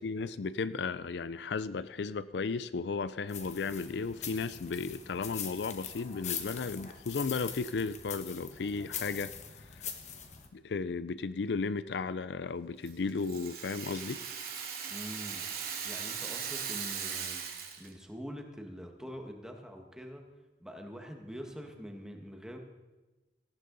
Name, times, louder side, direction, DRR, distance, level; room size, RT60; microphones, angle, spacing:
voice 1, 0.0-9.3 9.7-9.8 10.5-14.2, left 4 dB, 75° left, 15 dB, 0.4 m, -34 dB
sound 1, 3.3-10.5, left 8 dB, 40° left, 1.3 m, -42 dB
Rattle (instrument), 12.9-17.9, right 7 dB, 55° right, 2.4 m, -39 dB
voice 2, 14.9-15.4 15.8-17.4 17.8-20.2 20.6-22.6, equal, 5° right, 3 dB, 1.6 m, -44 dB
18.5 x 15.0 x 4.0 m, 1.1 s
head